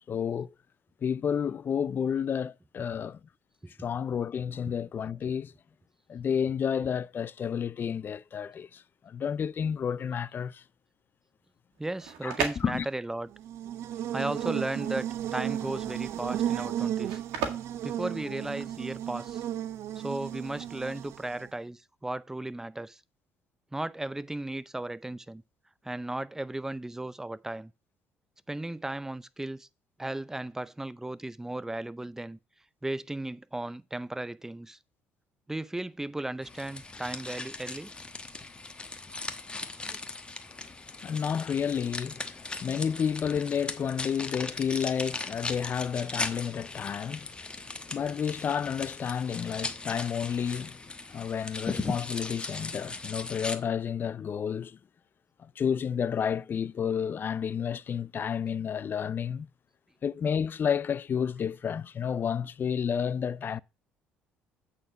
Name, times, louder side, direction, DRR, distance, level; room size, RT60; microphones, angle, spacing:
voice 1, 0.1-0.5 1.0-3.2 3.8-5.5 6.1-10.6 12.2-12.9 40.5-54.8 55.4-59.5 60.0-63.6, left 7 dB, 45° left, 0.4 m, -31 dB
sound 1, 11.7-18.8, right 7 dB, 80° right, 1.8 m, -38 dB
voice 2, 11.8-13.3 14.1-17.2 17.8-19.4 20.0-23.0 23.7-25.4 25.8-27.7 28.5-29.7 30.0-32.4 32.8-34.8 35.5-37.9 39.8-40.0, right 1 dB, 10° right, 0.6 m, -35 dB
Buzz, 13.3-21.5, right 11 dB, 65° right, 0.4 m, -34 dB
sound 2, 36.4-53.6, left 3 dB, 20° left, 1.0 m, -38 dB
8.5 x 4.3 x 5.7 m
supercardioid pair, 70°, 5 cm